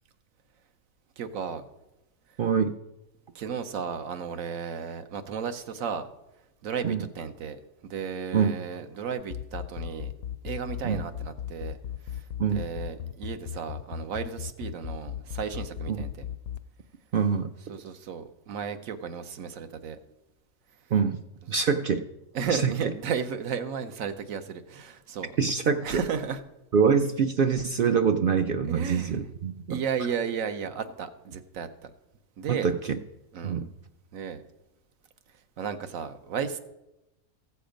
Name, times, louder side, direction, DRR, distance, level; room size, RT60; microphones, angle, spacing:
voice 1, 1.2-1.6 3.3-6.1 6.6-7.6 7.9-10.1 10.4-11.8 12.1-12.2 12.5-16.2 17.7-20.0 22.3-25.3 25.8-26.4 28.6-29.2 29.7-31.7 32.4-32.7 33.3-33.6 34.1-34.4 35.6-36.6, right 7 dB, 80° right, 10 dB, 1.2 m, -34 dB
voice 2, 2.4-2.7 6.8-7.0 8.3-8.6 10.8-11.0 12.4-12.6 15.9-16.0 17.1-17.5 20.9-21.2 21.5-22.0 22.5-22.7 25.4-26.0 26.7-29.8 32.5-33.0 33.4-33.7, right 6 dB, 60° right, 7 dB, 0.5 m, -25 dB
sound 1, 9.2-16.6, left 10 dB, 65° left, 0.6 m, -35 dB
15.0 x 7.0 x 5.1 m, 0.94 s
omnidirectional pair, 1.4 m